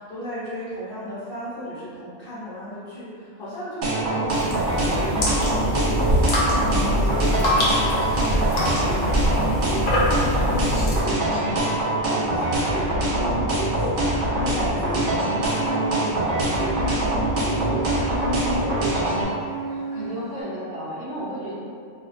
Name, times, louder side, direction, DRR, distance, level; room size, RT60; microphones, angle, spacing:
voice 1, 0.0-19.4, equal, 50° left, -10 dB, 0.8 m, -36 dB
sound 1, 3.8-19.2, right 1 dB, 70° right, 0.9 m, -23 dB
sound 2, 4.3-11.0, equal, 80° left, 1.0 m, -24 dB
voice 2, 11.1-11.4 19.6-21.5, right 1 dB, 40° right, -14 dB, 0.5 m, -34 dB
sound 3, 14.5-20.4, right 3 dB, 20° left, 0.5 m, -33 dB
2.5 x 2.2 x 2.4 m, 2.3 s
omnidirectional pair, 1.3 m